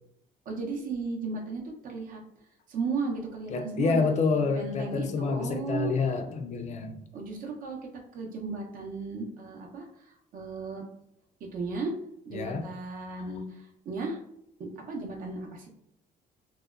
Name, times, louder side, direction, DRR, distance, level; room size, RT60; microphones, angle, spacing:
voice 1, 0.5-2.2 2.7-5.9 7.1-7.8 8.1-9.9 10.3-10.9 11.5-11.9 12.3-14.2 14.6-15.7, right 4 dB, 55° right, 0 dB, 0.6 m, -35 dB
voice 2, 3.5-7.0 12.3-12.6 13.2-13.3, left 4 dB, 45° left, 6 dB, 0.4 m, -28 dB
2.7 x 2.1 x 2.3 m, 0.79 s
cardioid pair, 110°, 17 cm